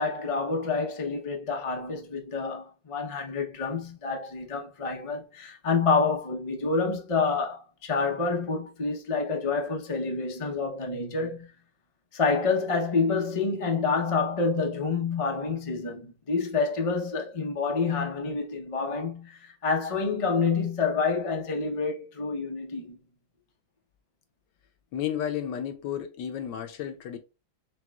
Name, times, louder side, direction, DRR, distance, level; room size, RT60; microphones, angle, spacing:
voice 1, 0.0-11.5 12.1-23.0, left 4 dB, 50° left, 0.3 m, -28 dB
voice 2, 24.9-27.2, left 9 dB, 70° left, 1.2 m, -32 dB
4.8 x 3.5 x 2.3 m
omnidirectional pair, 2.2 m